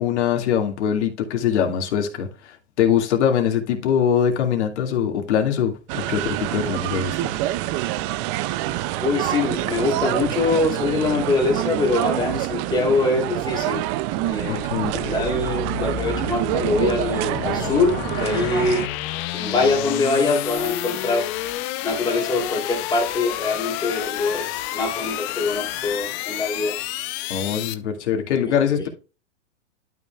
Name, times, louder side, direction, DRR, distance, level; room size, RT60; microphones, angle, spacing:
voice 1, 0.0-7.3 14.5-15.0 27.3-28.9, left 8 dB, 65° left, 2.2 m, -22 dB
sound 1, 5.9-18.9, right 15 dB, 25° right, 0.4 m, -26 dB
voice 2, 9.0-13.8 14.2-18.8 19.3-21.3 21.8-26.8 27.2-27.3 28.5-28.6, left 3 dB, 10° left, 2.9 m, -23 dB
sound 2, 14.0-27.7, left 14 dB, 30° left, 0.7 m, -30 dB
12.0 x 5.7 x 2.4 m
hypercardioid pair, 125°, 37 cm